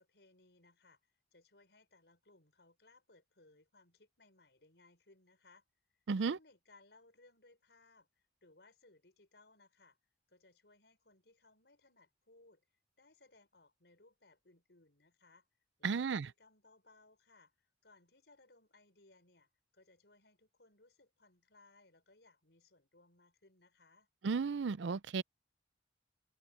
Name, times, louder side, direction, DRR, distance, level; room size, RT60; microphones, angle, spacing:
voice 1, 0.0-5.6 6.2-10.0 10.3-12.6 13.0-15.5 15.8-24.1, left 2 dB, 70° left, 6.1 m, -66 dB
voice 2, 6.1-6.4 15.8-16.3 24.2-25.2, right 5 dB, 90° right, 0.5 m, -34 dB
head